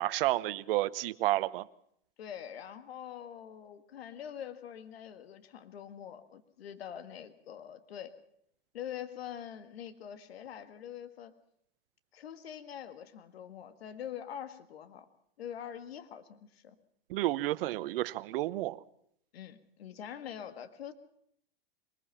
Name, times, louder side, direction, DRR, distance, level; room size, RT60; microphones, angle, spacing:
voice 1, 0.0-1.7 17.1-18.8, right 16 dB, 65° right, 1.0 m, -31 dB
voice 2, 2.2-8.1 8.7-11.3 12.1-15.1 15.4-16.8 19.3-20.9, left 9 dB, 80° left, 1.8 m, -44 dB
22.0 x 20.5 x 5.8 m
hypercardioid pair, 110°, 30 cm